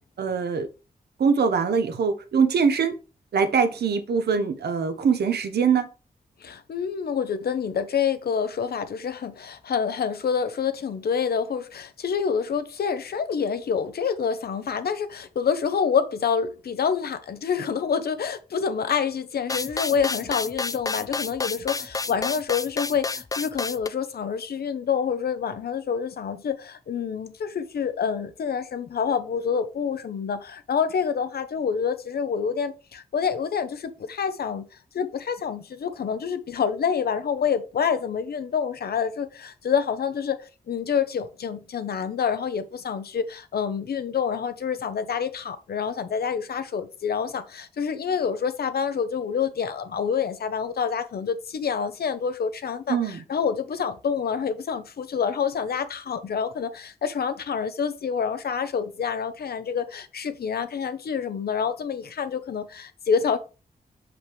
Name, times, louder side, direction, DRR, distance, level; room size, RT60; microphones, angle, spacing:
voice 1, 0.2-0.7 1.2-3.0 3.3-5.9 52.9-53.2, right 6 dB, 80° right, 0.9 m, -23 dB
voice 2, 6.4-34.7 34.9-63.4, left 6 dB, 75° left, 0.8 m, -27 dB
sound 1, 19.5-23.9, left 4 dB, 20° left, 0.3 m, -30 dB
6.0 x 5.1 x 3.4 m
cardioid pair, 75°, 16 cm